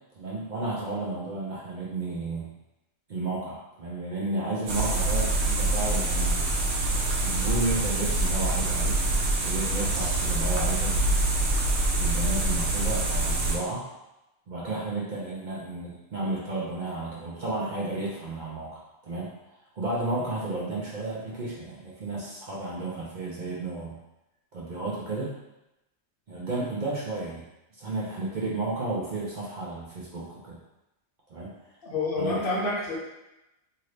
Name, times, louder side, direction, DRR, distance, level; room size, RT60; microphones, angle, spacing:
voice 1, 0.1-2.5 3.1-6.6 6.8-9.0 9.4-11.2 12.0-13.8 14.5-19.3 19.8-24.0 24.5-25.3 26.3-27.4 27.7-30.6 31.3-31.5 32.2-32.4, right 2 dB, 50° right, -6 dB, 0.7 m, -32 dB
sound 1, 4.7-13.6, right 2 dB, 85° right, 0.9 m, -25 dB
voice 2, 31.8-33.0, left 2 dB, 55° left, -4 dB, 0.8 m, -28 dB
2.8 x 2.6 x 3.2 m, 0.94 s
omnidirectional pair, 1.2 m